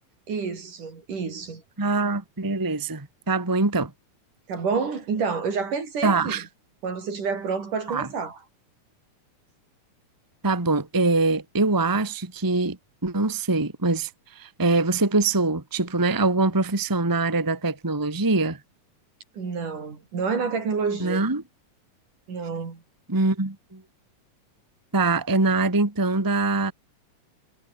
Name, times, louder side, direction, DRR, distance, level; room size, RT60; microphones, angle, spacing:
voice 1, 0.3-1.6 4.5-6.4 6.8-8.4 19.3-21.2 22.3-22.8, right 5 dB, 75° right, 6.3 m, -28 dB
voice 2, 1.8-3.9 6.0-6.4 7.9-8.1 10.4-12.8 13.0-18.6 21.0-21.4 23.1-23.8 24.9-26.7, right 3 dB, 10° right, 1.3 m, -23 dB
omnidirectional pair, 3.7 m